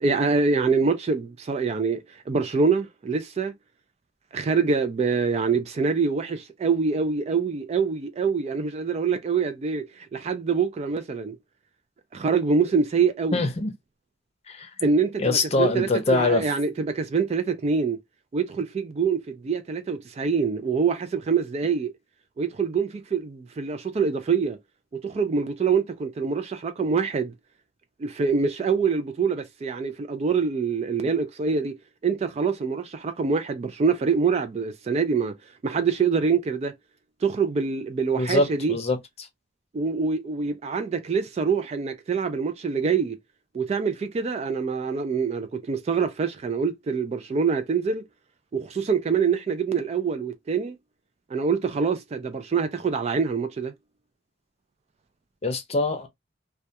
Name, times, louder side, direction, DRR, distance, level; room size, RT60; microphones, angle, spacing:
voice 1, 0.0-3.5 4.3-11.4 12.1-13.5 14.8-18.0 18.3-21.9 22.4-24.6 24.9-27.3 28.0-31.8 32.0-35.3 35.6-36.7 37.2-38.8 39.7-43.2 43.5-48.0 48.5-50.8 51.3-53.7, right 5 dB, 35° right, 0.3 m, -25 dB
voice 2, 13.3-13.7 14.5-14.7 15.2-16.5 38.2-39.0 55.4-56.1, left 3 dB, 35° left, 0.6 m, -23 dB
2.2 x 2.2 x 2.7 m
head